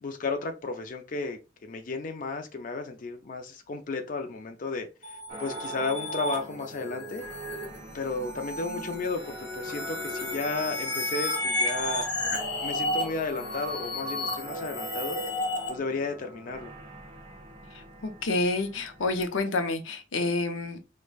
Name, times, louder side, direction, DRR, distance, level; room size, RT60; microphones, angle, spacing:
voice 1, 0.0-7.2 7.9-12.1 12.6-15.2 15.7-16.7, left 3 dB, 45° left, 0.4 m, -33 dB
sound 1, 5.0-15.7, left 1 dB, 60° left, 1.5 m, -32 dB
sound 2, 5.3-19.2, right 1 dB, 25° right, 0.7 m, -45 dB
voice 2, 17.7-20.8, left 2 dB, 90° left, 0.6 m, -29 dB
4.7 x 2.1 x 2.3 m
head